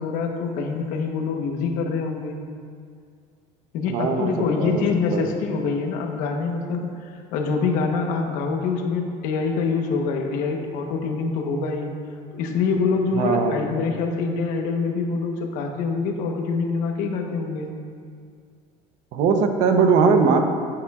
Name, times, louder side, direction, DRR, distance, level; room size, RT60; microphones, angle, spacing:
voice 1, 0.0-2.4 3.7-11.9 12.3-17.7, left 4 dB, 65° left, 3 dB, 1.0 m, -25 dB
voice 2, 3.9-4.3 4.6-4.8 5.1-5.3 12.5-12.6 13.1-13.7 19.1-20.4, right 5 dB, 55° right, 5 dB, 0.7 m, -20 dB
10.5 x 8.7 x 2.4 m, 2.2 s
cardioid pair, 150°, 15 cm